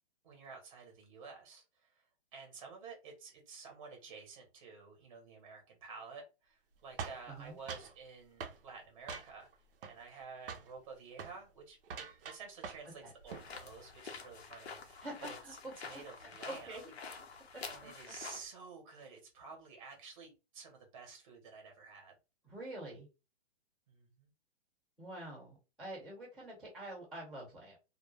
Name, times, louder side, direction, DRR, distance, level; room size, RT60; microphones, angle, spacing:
voice 1, 0.2-2.0 2.3-15.6 15.8-16.8 17.6-22.2 23.9-24.3, right 5 dB, 30° right, 2 dB, 0.8 m, -51 dB
sound 1, 7.0-7.9 8.4-8.6 9.1-9.5 9.8-10.2 10.5-10.7 11.1-11.4 11.8-12.9 13.2-13.5, right 6 dB, 60° right, 0.5 m, -44 dB
sound 2, 13.3-18.5, left 5 dB, 75° left, 0.8 m, -48 dB
voice 2, 15.0-16.0 16.4-16.9 17.8-17.9 22.4-23.1 25.0-27.8, right 1 dB, ahead, -21 dB, 0.4 m, -46 dB
2.1 x 2.1 x 3.1 m, 0.28 s
hypercardioid pair, 170°, 32 cm